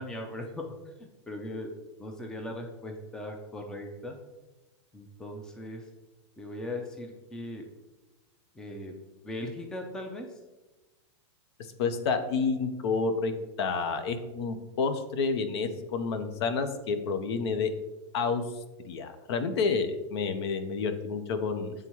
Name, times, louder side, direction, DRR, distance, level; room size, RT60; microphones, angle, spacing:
voice 1, 0.0-1.7 2.0-4.2 4.9-5.8 6.4-7.6 8.6-8.9 9.2-10.3, left 1 dB, 5° left, 3 dB, 0.4 m, -39 dB
voice 2, 11.8-17.7 18.1-18.4 18.9-21.7, left 4 dB, 60° left, 9 dB, 0.7 m, -29 dB
8.8 x 3.5 x 3.0 m, 1.1 s
supercardioid pair, 145°, 15 cm